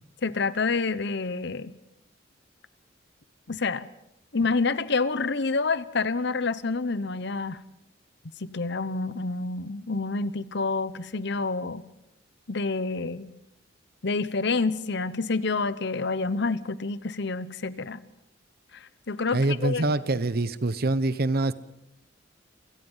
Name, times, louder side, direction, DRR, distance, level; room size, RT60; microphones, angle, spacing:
voice 1, 0.2-1.7 3.5-3.9 4.3-7.6 8.4-11.8 12.5-13.3 14.0-18.0 18.7-19.8, left 4 dB, 65° left, 15 dB, 1.0 m, -28 dB
voice 2, 19.3-21.5, right 2 dB, 55° right, 15 dB, 0.9 m, -25 dB
28.0 x 17.0 x 5.7 m, 0.84 s
head